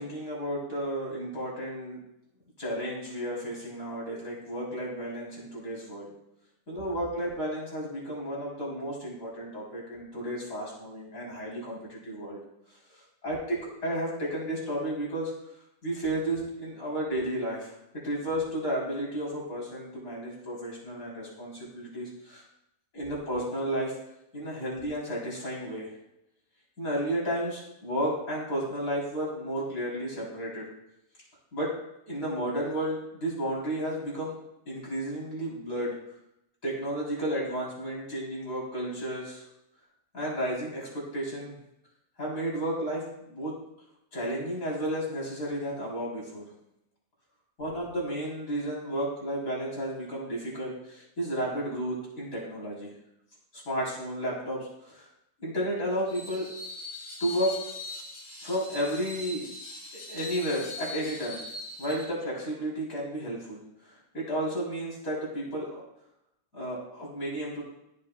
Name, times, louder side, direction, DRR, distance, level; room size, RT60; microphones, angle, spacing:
voice 1, 0.0-2.0 2.6-6.1 6.7-12.4 12.9-15.3 15.8-17.7 18.0-22.4 22.9-24.0 24.3-25.9 26.8-30.6 31.5-31.7 32.1-34.4 34.7-35.9 36.6-39.4 40.1-41.6 42.2-43.5 44.1-46.5 47.6-52.9 53.5-55.1 55.4-56.5 57.2-57.5 58.4-59.5 59.9-61.4 61.8-63.6 64.1-65.8 66.5-67.6, right 1 dB, 65° left, -4 dB, 3.8 m, -32 dB
Screech, 56.1-62.1, left 2 dB, 45° left, 1.7 m, -41 dB
14.0 x 7.6 x 2.2 m, 0.84 s
omnidirectional pair, 1.6 m